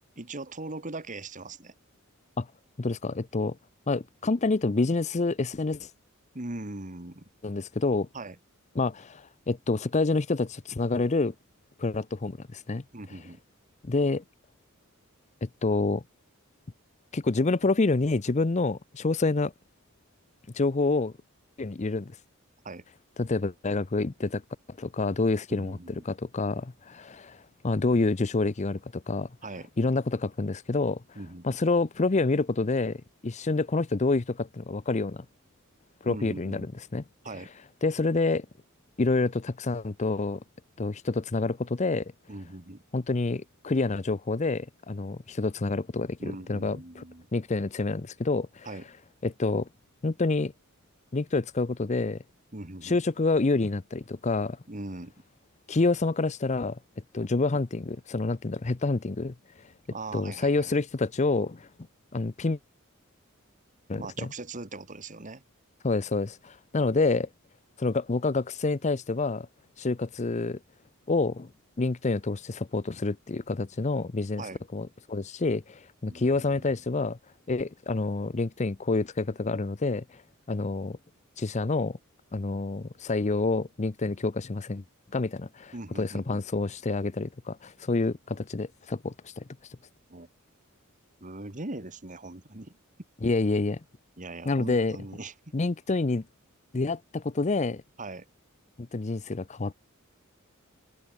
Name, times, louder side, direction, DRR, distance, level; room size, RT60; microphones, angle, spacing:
voice 1, 0.2-1.7 6.3-7.2 8.1-8.4 12.9-13.4 22.6-22.8 25.5-26.1 29.4-29.7 31.2-31.5 36.0-36.7 37.2-37.5 42.3-42.8 46.2-47.3 48.6-48.9 52.5-53.0 54.7-55.1 59.9-60.7 64.0-65.4 74.4-74.6 76.0-76.8 85.7-86.4 90.1-90.3 91.2-92.8 94.2-95.3 98.0-98.3, right 2 dB, 35° right, 2.1 m, -40 dB
voice 2, 2.8-3.6 3.9-5.9 7.4-8.1 8.8-11.3 11.8-12.8 13.8-14.2 15.4-16.0 17.1-19.5 20.5-21.1 21.6-22.1 23.2-24.4 24.8-25.8 26.1-29.3 29.8-31.0 31.4-35.2 36.0-36.7 36.9-37.0 37.8-38.5 39.0-40.4 40.8-42.1 42.9-47.0 47.3-48.7 49.2-49.7 50.0-50.5 51.1-52.2 52.8-54.6 55.7-56.8 57.1-59.3 60.1-61.7 62.1-62.6 63.9-64.3 65.8-67.3 67.8-69.5 69.8-70.6 71.1-71.5 71.8-74.4 74.7-77.2 77.5-80.2 80.5-81.0 81.4-82.0 82.3-84.8 85.1-89.4 93.2-93.8 94.5-95.0 95.5-96.2 96.7-97.8 98.8-99.7, left 3 dB, 35° left, 0.6 m, -28 dB
head